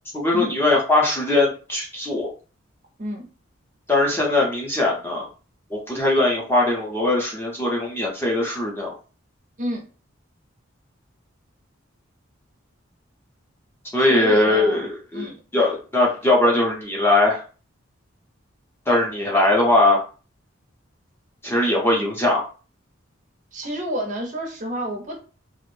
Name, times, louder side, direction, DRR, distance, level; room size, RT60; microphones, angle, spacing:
voice 1, 0.1-2.3 3.9-5.3 5.7-8.9 13.9-17.4 18.9-20.0 21.4-22.5, left 2 dB, 10° left, -2 dB, 0.6 m, -20 dB
voice 2, 14.0-14.9 15.1-15.4 23.5-25.2, equal, 35° right, 1 dB, 0.5 m, -29 dB
2.5 x 2.0 x 3.1 m, 0.37 s
head